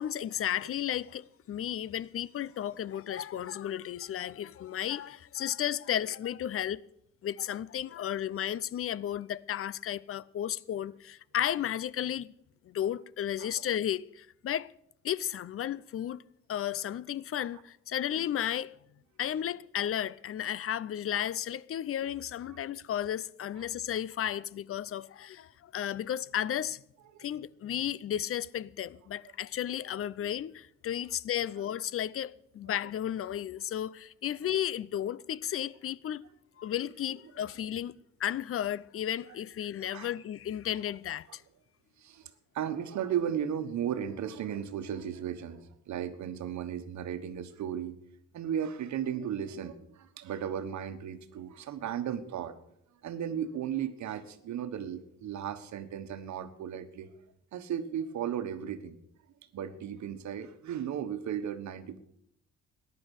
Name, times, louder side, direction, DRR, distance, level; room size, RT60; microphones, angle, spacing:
voice 1, 0.0-6.8 7.2-12.3 12.7-14.7 15.0-16.2 16.5-18.8 19.2-26.8 27.2-36.2 36.6-37.9 38.2-41.4, left 10 dB, 50° left, 0.5 m, -33 dB
voice 2, 42.0-48.0 48.3-52.6 53.0-57.1 57.5-59.0 59.5-62.0, right 9 dB, 70° right, 1.3 m, -35 dB
14.5 x 10.5 x 6.5 m
cardioid pair, 90°, 30 cm